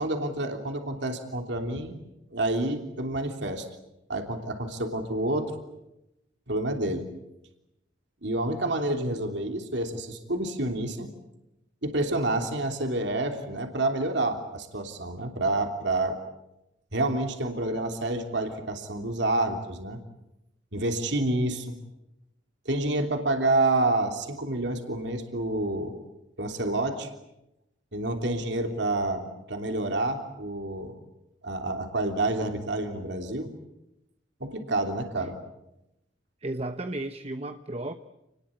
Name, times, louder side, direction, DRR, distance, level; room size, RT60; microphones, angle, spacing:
voice 1, 0.0-1.9 2.3-3.6 4.1-5.5 6.5-7.1 8.2-11.1 11.8-16.2 16.9-20.0 20.7-21.7 22.6-26.0 26.4-27.1 27.9-31.0 31.4-33.5 34.4-35.4, right 2 dB, 65° right, 4 dB, 3.2 m, -28 dB
voice 2, 36.4-37.9, right 2 dB, 30° right, 9 dB, 1.0 m, -34 dB
29.0 x 20.5 x 8.6 m, 0.89 s
head